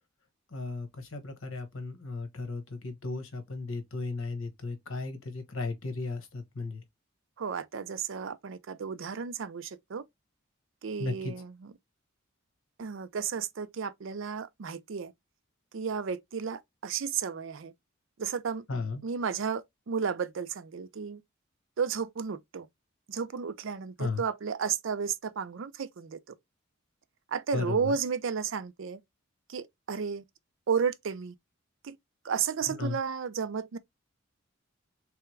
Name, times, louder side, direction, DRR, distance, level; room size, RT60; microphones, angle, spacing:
voice 1, 0.5-6.8 11.0-11.3 18.7-19.0 24.0-24.2 27.5-28.0 32.7-33.0, left 3 dB, 75° left, 1.1 m, -35 dB
voice 2, 7.4-10.0 10.8-11.5 12.8-15.1 15.7-17.7 18.2-18.7 19.0-21.2 21.8-22.7 23.1-26.4 27.3-29.0 29.5-30.2 30.7-31.3 31.8-32.0 32.2-33.8, right 6 dB, 65° right, 0.5 m, -33 dB
3.4 x 3.4 x 3.1 m
head